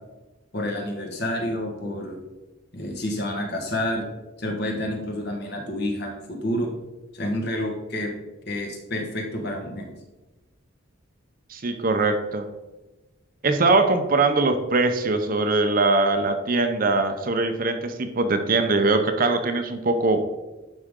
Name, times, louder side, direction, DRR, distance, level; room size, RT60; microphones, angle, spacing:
voice 1, 0.5-2.2 2.7-4.1 4.4-6.7 7.1-8.1 8.5-9.9, left 1 dB, 55° left, 2 dB, 1.5 m, -29 dB
voice 2, 11.5-12.5 13.4-20.2, right 3 dB, 45° right, 7 dB, 0.7 m, -22 dB
11.5 x 5.1 x 3.7 m, 1.1 s
head